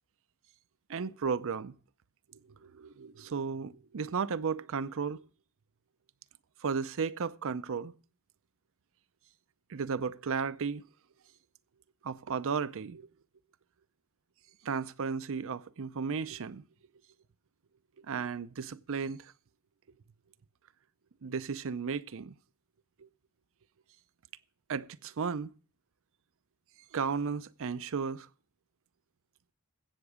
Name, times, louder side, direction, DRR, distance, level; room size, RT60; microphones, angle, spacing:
voice 1, 0.9-1.7 2.6-5.2 6.6-7.9 9.7-10.8 12.0-13.1 14.6-16.6 18.1-19.3 21.2-22.3 23.0-23.1 24.7-25.5 26.9-28.3, right 5 dB, 65° right, 0.5 m, -34 dB
15.5 x 7.8 x 4.9 m
head